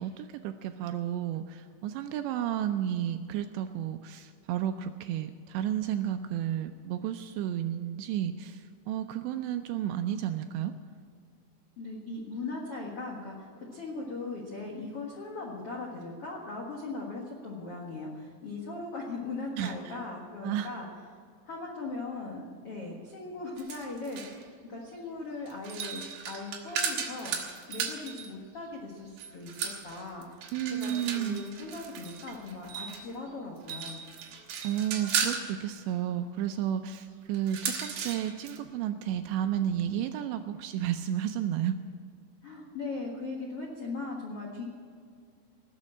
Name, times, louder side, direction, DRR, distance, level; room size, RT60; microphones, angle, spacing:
voice 1, 0.0-10.7 19.6-20.0 20.4-20.7 30.5-31.5 34.6-41.8, right 10 dB, 85° right, 8 dB, 2.6 m, -32 dB
voice 2, 11.8-20.9 21.4-24.4 24.7-27.3 27.7-30.5 30.8-34.0 42.4-44.6, left 3 dB, 80° left, -2 dB, 1.3 m, -39 dB
sound 1, 23.6-24.4 25.5-28.3 29.2-33.1 33.6-35.5 37.3-38.6, right 6 dB, 60° right, 3.0 m, -35 dB
19.0 x 7.5 x 8.6 m, 2.1 s
omnidirectional pair, 5.5 m